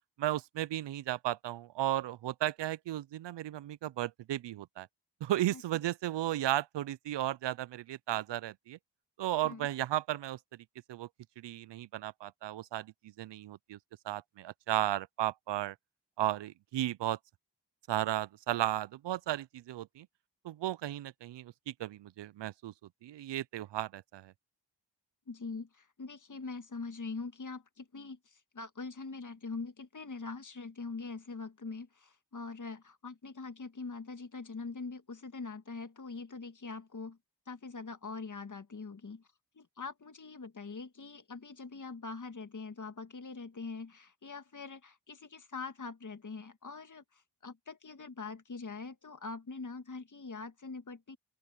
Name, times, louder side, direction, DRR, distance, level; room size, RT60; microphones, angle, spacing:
voice 1, 0.2-4.9 5.2-8.8 9.2-10.4 10.9-11.1 11.4-12.9 13.2-13.8 14.0-15.8 16.2-17.2 17.9-20.1 20.4-22.7 23.0-24.3, right 13 dB, 75° right, 0.5 m, -34 dB
voice 2, 25.3-37.2 37.5-39.3 39.5-51.2, left 4 dB, 45° left, 1.9 m, -43 dB
open air
cardioid pair, 60°, 42 cm